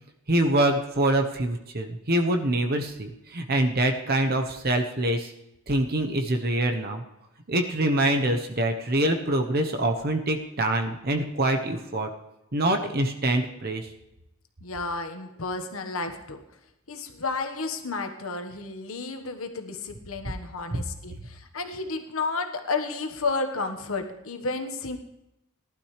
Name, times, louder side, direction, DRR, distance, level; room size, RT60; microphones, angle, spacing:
voice 1, 0.3-5.3 5.7-7.0 7.5-12.1 12.5-13.9 20.7-20.8, right 1 dB, 45° right, 4 dB, 1.0 m, -25 dB
voice 2, 14.6-16.4 16.9-25.0, left 3 dB, 75° left, 6 dB, 1.4 m, -32 dB
19.0 x 12.0 x 3.3 m, 0.89 s
head